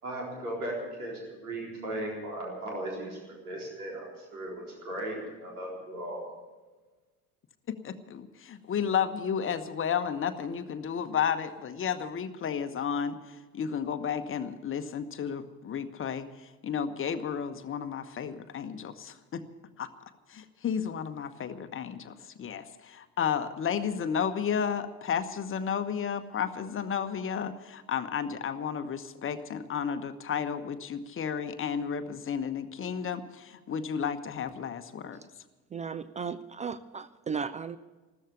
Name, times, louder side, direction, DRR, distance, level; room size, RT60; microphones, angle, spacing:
voice 1, 0.0-6.2, right 1 dB, 75° right, -2 dB, 4.1 m, -37 dB
voice 2, 7.7-19.4 19.8-19.9 20.3-35.2, left 7 dB, 30° left, 10 dB, 1.1 m, -32 dB
voice 3, 35.7-37.8, right 6 dB, 15° right, 15 dB, 0.4 m, -35 dB
14.5 x 13.5 x 7.0 m, 1.3 s
figure-of-eight pair, 55°, 44 cm